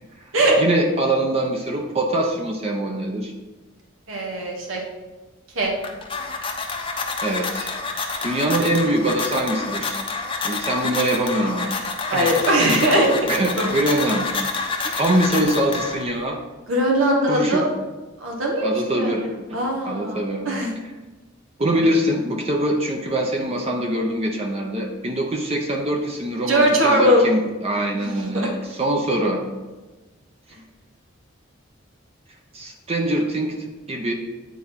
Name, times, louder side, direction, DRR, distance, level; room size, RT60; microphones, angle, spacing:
voice 1, 0.6-3.3 7.2-7.7 8.2-10.0 10.4-11.7 12.1-12.3 13.3-14.3 14.9-16.4 17.2-17.7 18.6-19.3 19.8-20.5 21.6-29.4 32.5-33.5 33.9-34.1, right 1 dB, 30° right, 1 dB, 0.8 m, -23 dB
voice 2, 4.1-4.8 5.5-5.7 12.1-13.1 13.6-13.7 14.8-14.9 16.7-17.6 18.2-19.2 19.5-20.2 20.4-20.7 26.5-27.2 28.0-28.5, right 1 dB, 90° right, -1 dB, 1.6 m, -20 dB
sound 1, 5.6-16.3, left 4 dB, 25° left, 0.9 m, -28 dB
9.3 x 4.5 x 5.7 m, 1.2 s
head